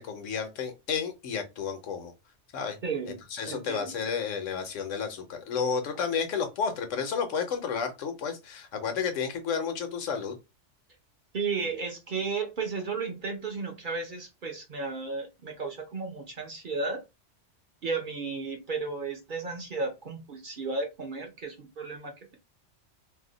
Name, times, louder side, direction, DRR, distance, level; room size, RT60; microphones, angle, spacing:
voice 1, 0.0-2.1 2.5-2.8 3.3-10.4, left 6 dB, 80° left, 1.1 m, -31 dB
voice 2, 2.8-3.2 3.5-4.0 11.3-17.0 17.8-22.3, right 4 dB, 50° right, 0.7 m, -34 dB
2.7 x 2.1 x 3.8 m
omnidirectional pair, 1.3 m